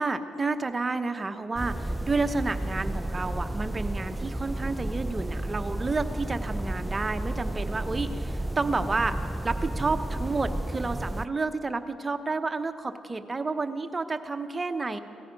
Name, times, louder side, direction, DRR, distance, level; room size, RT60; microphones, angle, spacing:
voice 1, 0.0-9.2 9.4-15.0, right 3 dB, 25° right, 8 dB, 0.9 m, -30 dB
sound 1, 1.5-11.3, right 1 dB, 10° right, 0.3 m, -32 dB
17.5 x 14.0 x 5.3 m, 2.6 s
cardioid pair, 90°, 0 cm